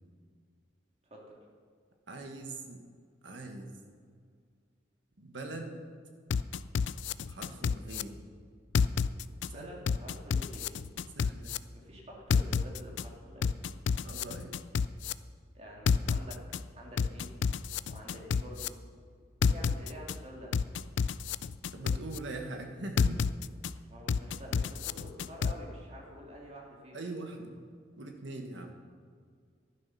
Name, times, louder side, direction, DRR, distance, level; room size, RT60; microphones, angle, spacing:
voice 1, 1.0-1.4 2.4-2.5 9.5-10.8 11.7-13.6 15.5-17.3 17.8-18.8 19.4-20.6 23.9-27.0, equal, 35° right, -2 dB, 2.6 m, -48 dB
voice 2, 2.1-2.8 3.2-3.7 5.2-5.8 7.3-8.3 9.5-9.7 11.1-11.5 14.0-14.6 21.7-23.3 26.9-27.5 28.0-28.7, right 2 dB, 80° right, 3 dB, 1.6 m, -42 dB
sound 1, 6.3-8.0 8.7-9.5 9.9-11.6 12.3-13.0 13.4-15.1 15.9-16.6 17.0-18.7 19.4-20.1 20.5-22.2 23.0-23.7 24.1-25.5, left 6 dB, 75° left, 0.3 m, -29 dB
11.5 x 10.0 x 5.8 m, 2.1 s
head